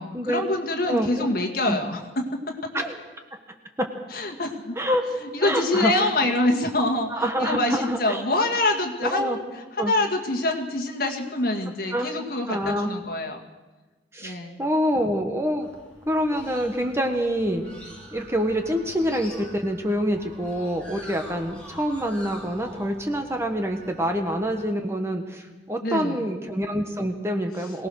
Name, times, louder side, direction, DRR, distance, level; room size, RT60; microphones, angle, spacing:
voice 1, 0.0-2.7 4.1-4.8 5.2-13.4 14.2-14.6 25.8-26.3, left 2 dB, 55° left, 2 dB, 2.1 m, -26 dB
voice 2, 0.9-1.3 1.7-1.8 2.7-3.0 3.8-3.9 4.8-5.0 5.4-6.3 7.1-8.2 9.0-9.4 9.8-9.9 11.9-12.1 12.5-12.9 14.1-15.7 16.1-17.7 18.1-27.9, equal, 15° right, 4 dB, 1.3 m, -26 dB
sound 1, 15.6-24.7, left 1 dB, 5° left, 3.3 m, -46 dB
sound 2, 17.2-24.7, right 2 dB, 40° right, 4.2 m, -50 dB
23.0 x 18.0 x 6.4 m, 1.2 s
head